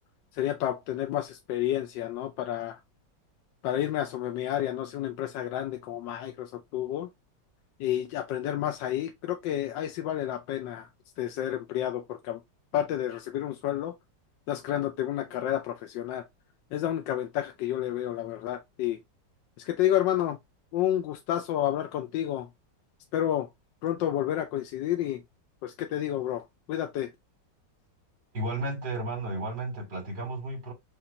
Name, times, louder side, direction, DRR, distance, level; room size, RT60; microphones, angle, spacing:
voice 1, 0.3-2.8 3.6-7.1 7.8-10.9 11.2-12.4 12.7-13.9 14.5-16.2 16.7-19.0 19.6-20.4 20.7-22.5 23.1-23.5 23.8-25.2 25.6-27.1, left 12 dB, 80° left, 1.3 m, -30 dB
voice 2, 28.3-30.7, right 2 dB, 75° right, 3.7 m, -33 dB
6.7 x 2.5 x 2.7 m
omnidirectional pair, 2.0 m